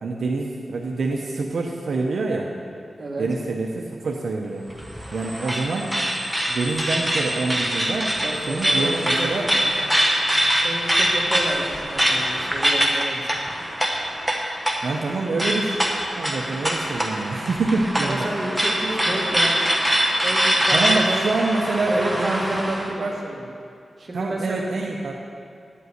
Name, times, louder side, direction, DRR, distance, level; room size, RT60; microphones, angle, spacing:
voice 1, 0.0-2.5 3.2-4.7 5.1-5.9 6.5-8.2 8.5-9.5 14.8-15.8 16.2-18.3 20.7-23.1 24.1-25.1, right 3 dB, 70° right, -1 dB, 0.7 m, -26 dB
sound 1, 4.7-22.9, equal, ahead, 1.0 m, -23 dB
voice 2, 8.2-9.3 10.6-13.3 18.0-19.6 20.2-21.3 21.9-23.5 24.0-24.6, right 2 dB, 35° right, -2 dB, 1.5 m, -31 dB
9.8 x 5.4 x 7.9 m, 2.3 s
wide cardioid pair, 155°, 0 cm